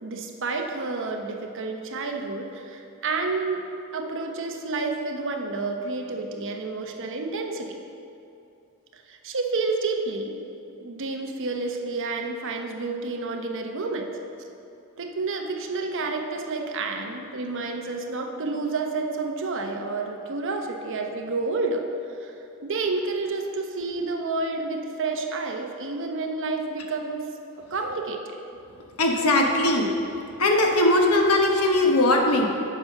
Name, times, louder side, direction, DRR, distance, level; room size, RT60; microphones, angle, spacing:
voice 1, 0.0-3.6 3.9-7.8 8.9-10.4 10.8-14.1 15.0-21.9 22.2-22.3 22.6-27.3 27.7-28.4, right 3 dB, 60° right, 3 dB, 0.9 m, -30 dB
voice 2, 29.0-29.9 30.4-32.5, left 1 dB, 80° left, 1 dB, 1.2 m, -20 dB
8.2 x 5.8 x 5.9 m, 2.7 s
head